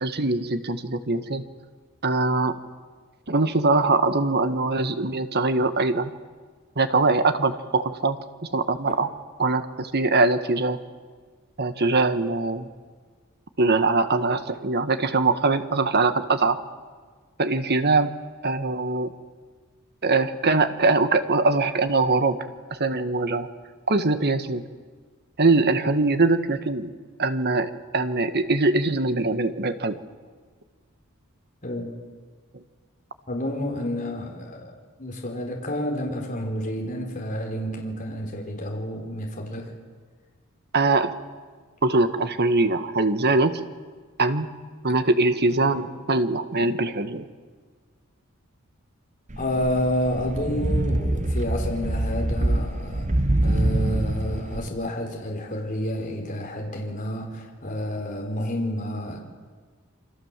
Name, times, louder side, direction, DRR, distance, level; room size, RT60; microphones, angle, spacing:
voice 1, 0.0-1.4 2.0-2.5 3.3-6.1 6.8-8.2 8.5-9.1 9.4-10.8 11.6-12.7 13.6-16.6 17.4-18.1 18.4-19.1 20.0-22.4 22.7-23.5 23.9-24.6 25.4-26.9 27.2-30.0 40.7-41.1 41.8-43.6 44.2-44.5 44.8-47.3, right 3 dB, 50° right, 9 dB, 1.7 m, -22 dB
voice 2, 33.3-39.7 45.7-45.9 49.4-53.1 53.4-59.2, equal, 40° left, 1 dB, 4.7 m, -29 dB
sound 1, 49.3-54.7, right 1 dB, 35° right, 1.1 m, -25 dB
28.5 x 25.5 x 7.6 m, 1.5 s
head